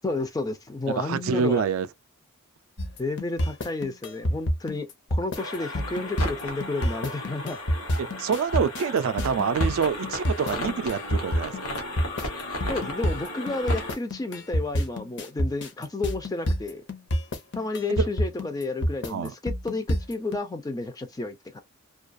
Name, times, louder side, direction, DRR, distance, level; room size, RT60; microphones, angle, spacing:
voice 1, 0.0-1.6 3.0-7.6 12.7-16.8 17.6-21.6, left 2 dB, 15° left, 0.3 m, -31 dB
voice 2, 0.9-1.9 8.0-11.7 17.9-18.0 19.1-19.3, right 6 dB, 65° right, 0.3 m, -26 dB
sound 1, 2.8-20.4, equal, 50° left, 0.7 m, -27 dB
sound 2, 5.3-13.9, left 1 dB, 80° left, 0.9 m, -35 dB
2.3 x 2.3 x 2.5 m
head